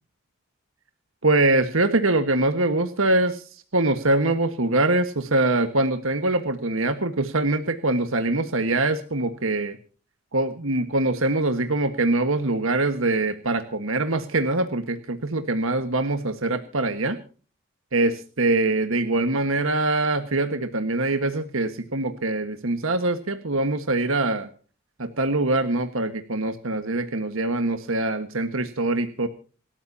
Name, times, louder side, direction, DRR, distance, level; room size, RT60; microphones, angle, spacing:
voice 1, 1.2-9.8 10.3-17.2 17.9-24.5 25.0-29.3, right 2 dB, 70° right, 8 dB, 1.5 m, -23 dB
28.0 x 13.5 x 2.8 m, 0.39 s
head